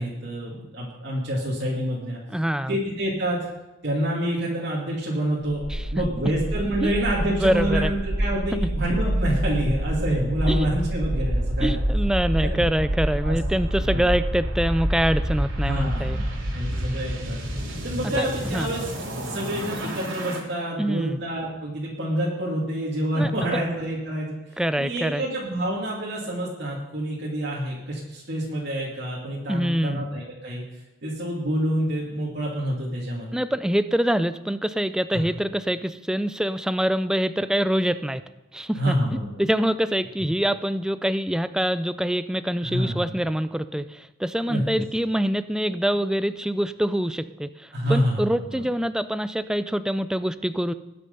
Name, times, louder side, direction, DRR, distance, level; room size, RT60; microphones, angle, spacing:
voice 1, 0.0-2.2 2.7-3.5 3.8-5.6 5.9-11.8 12.4-12.6 13.2-13.4 13.9-14.1 15.6-17.4 17.8-18.9 19.2-24.4 24.8-30.6 31.0-33.4 35.1-35.3 38.8-39.3 40.2-40.3 42.6-43.0 44.5-44.6 47.7-48.6, right 1 dB, 55° right, -5 dB, 2.5 m, -27 dB
voice 2, 2.3-2.8 5.7-6.1 6.8-6.9 7.4-7.9 8.5-8.7 10.5-10.7 11.6-16.2 18.2-18.7 20.8-21.2 23.1-23.6 24.6-25.2 29.5-30.0 33.3-38.2 38.5-39.0 39.4-50.7, equal, 5° right, 13 dB, 0.4 m, -25 dB
sound 1, 5.4-20.4, right 1 dB, 75° right, 3.1 m, -27 dB
20.5 x 6.9 x 5.4 m, 0.99 s
head